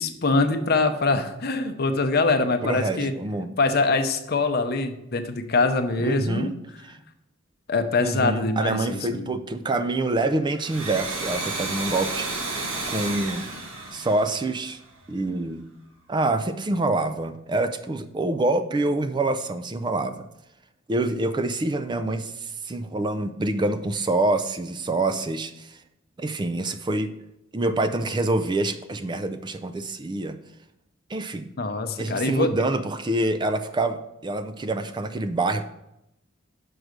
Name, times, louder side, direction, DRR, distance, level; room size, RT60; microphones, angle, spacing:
voice 1, 0.0-3.1 3.6-6.5 6.9-7.0 7.7-9.3 31.6-32.5, left 3 dB, 50° left, 7 dB, 0.7 m, -24 dB
voice 2, 2.6-3.5 6.0-6.5 8.0-12.3 12.9-13.5 13.9-14.8 15.1-15.7 16.1-20.2 20.9-25.8 26.2-27.1 27.5-30.4 31.1-31.5 32.0-35.6, right 2 dB, 20° right, 10 dB, 0.4 m, -26 dB
Domestic sounds home sounds, 10.5-15.0, right 3 dB, 85° right, 1.6 m, -32 dB
6.2 x 4.7 x 6.5 m, 0.85 s
head